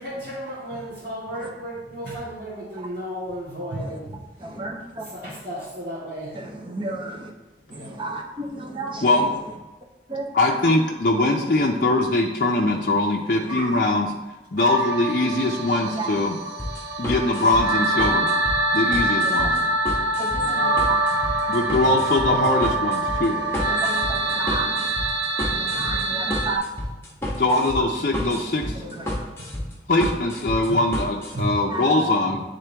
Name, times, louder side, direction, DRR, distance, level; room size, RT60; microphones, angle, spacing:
voice 1, 0.0-4.2 4.5-4.6 5.0-6.4 7.7-8.0 20.4-20.8 25.8-25.9 26.2-26.3 29.4-29.5 31.3-31.5, equal, 50° right, -12 dB, 2.0 m, -34 dB
voice 2, 4.4-5.0 6.3-7.3 7.7-9.1 10.1-10.2 10.7-10.8 13.4-13.7 16.0-16.1 19.1-19.5 20.2-21.0 23.6-24.9 25.5-26.6 28.8-29.1 31.7-32.2, right 2 dB, 30° right, 1 dB, 0.8 m, -32 dB
voice 3, 10.3-14.1 14.5-16.4 17.0-18.3 18.7-19.6 20.8-20.9 21.5-23.4 25.7-26.0 27.4-28.8 29.9-32.4, left 2 dB, 50° left, -1 dB, 0.5 m, -22 dB
sound 1, 14.6-26.6, right 2 dB, 75° right, 0.5 m, -25 dB
sound 2, 16.6-31.3, equal, 15° left, 1.1 m, -31 dB
9.2 x 3.7 x 3.4 m, 1.1 s
head